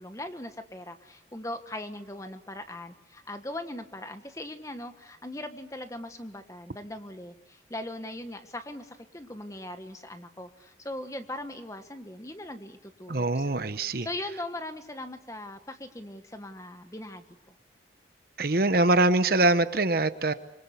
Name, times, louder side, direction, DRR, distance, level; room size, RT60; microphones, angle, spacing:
voice 1, 0.0-17.5, left 1 dB, 15° left, 8 dB, 1.4 m, -40 dB
voice 2, 13.1-14.1 18.4-20.3, right 2 dB, 50° right, 11 dB, 1.0 m, -23 dB
25.5 x 24.0 x 8.3 m, 0.88 s
head